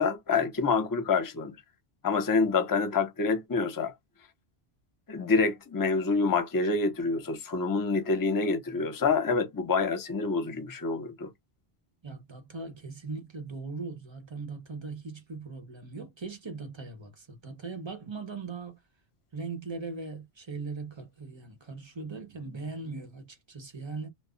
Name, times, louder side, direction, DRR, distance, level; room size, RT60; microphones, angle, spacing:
voice 1, 0.0-1.6 2.0-3.9 5.1-11.3, left 4 dB, 25° left, 0.4 m, -27 dB
voice 2, 12.0-18.8 19.3-24.1, right 4 dB, 30° right, 0.7 m, -39 dB
2.1 x 2.0 x 3.7 m
omnidirectional pair, 1.1 m